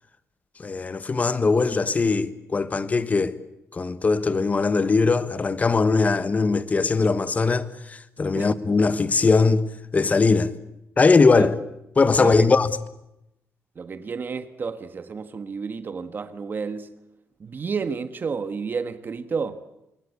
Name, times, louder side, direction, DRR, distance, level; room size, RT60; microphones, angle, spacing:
voice 1, 0.6-3.3 3.7-9.6 9.9-10.5 11.0-11.5 12.0-12.7, left 4 dB, 30° left, 1.4 m, -20 dB
voice 2, 12.2-12.5 13.7-16.9 17.4-19.6, right 5 dB, 40° right, 1.4 m, -31 dB
26.5 x 22.0 x 8.5 m
cardioid pair, 120°, 5 cm